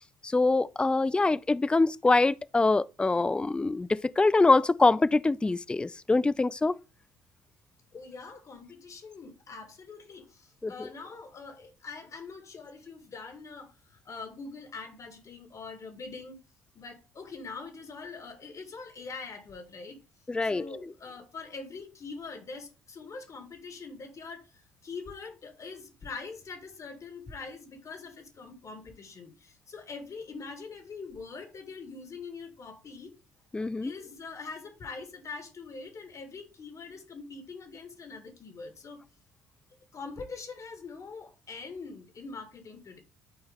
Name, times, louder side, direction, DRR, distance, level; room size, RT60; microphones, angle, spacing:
voice 1, 0.2-6.8 10.6-10.7 20.3-20.6 33.5-33.9, left 3 dB, 10° left, 0.4 m, -24 dB
voice 2, 7.9-16.4 16.7-20.0 20.4-33.1 33.8-39.0 39.9-43.0, left 4 dB, 40° left, 2.0 m, -43 dB
11.5 x 4.4 x 3.7 m
figure-of-eight pair, 55°, 8 cm